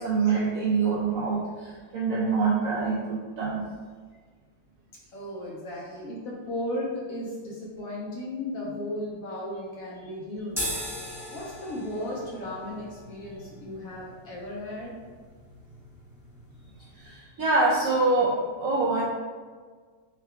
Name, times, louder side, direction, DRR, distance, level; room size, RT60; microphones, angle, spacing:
voice 1, 0.0-3.6 16.9-19.0, right 3 dB, 70° right, -6 dB, 0.8 m, -25 dB
voice 2, 5.1-10.8 11.3-15.0, left 1 dB, 65° left, -4 dB, 1.0 m, -35 dB
sound 1, 10.5-17.1, equal, ahead, 0.6 m, -39 dB
3.7 x 2.2 x 3.4 m, 1.5 s
omnidirectional pair, 1.8 m